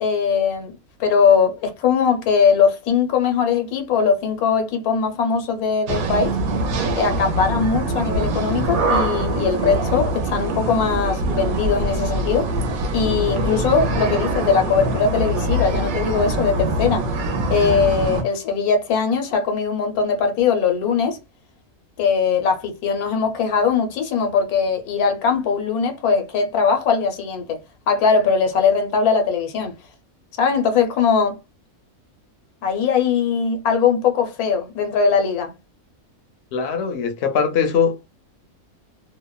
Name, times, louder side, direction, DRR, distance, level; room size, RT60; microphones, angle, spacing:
voice 1, 0.0-6.4 7.0-12.5 12.9-17.1 17.5-21.2 22.0-27.6 27.9-29.7 30.4-31.4 32.6-35.5, left 6 dB, 90° left, 1.2 m, -20 dB
sound 1, 5.9-18.2, right 2 dB, 75° right, 1.0 m, -23 dB
voice 2, 36.5-38.1, left 6 dB, 60° left, 0.7 m, -21 dB
2.8 x 2.1 x 2.2 m
omnidirectional pair, 1.5 m